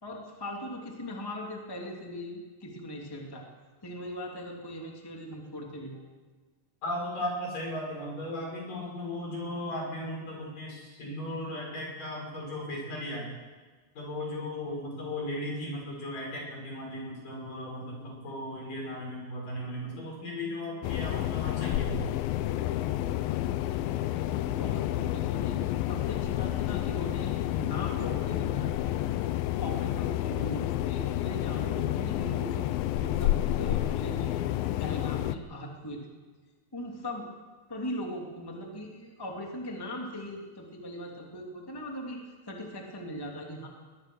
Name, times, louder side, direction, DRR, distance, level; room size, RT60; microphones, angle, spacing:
voice 1, 0.0-3.5 3.8-6.0 24.4-29.1 29.6-32.6 33.0-34.3 34.8-36.1 36.7-37.3 37.7-43.7, equal, 5° left, 0 dB, 2.4 m, -39 dB
voice 2, 6.8-13.3 14.0-22.0, left 1 dB, 70° left, -1 dB, 7.7 m, -36 dB
sound 1, 20.8-35.4, left 14 dB, 85° left, 2.5 m, -30 dB
22.5 x 21.0 x 6.4 m, 1.4 s
omnidirectional pair, 4.0 m